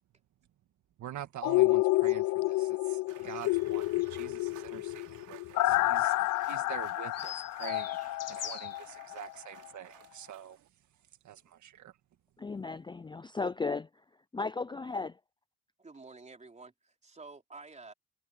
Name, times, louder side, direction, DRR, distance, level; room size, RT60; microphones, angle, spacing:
voice 1, 1.0-8.0 8.3-10.6 11.2-11.9, right 11 dB, 70° right, 1.8 m, -46 dB
sound 1, 1.4-9.3 9.7-9.8, left 18 dB, 85° left, 0.6 m, -29 dB
sound 2, 3.1-10.7, right 13 dB, 85° right, 3.4 m, -56 dB
sound 3, 3.2-8.8, left 9 dB, 55° left, 1.7 m, -46 dB
voice 2, 12.4-14.0 14.3-15.2, left 4 dB, 15° left, 0.5 m, -35 dB
voice 3, 15.8-17.9, right 3 dB, 25° right, 3.9 m, -50 dB
cardioid pair, 90°, 30 cm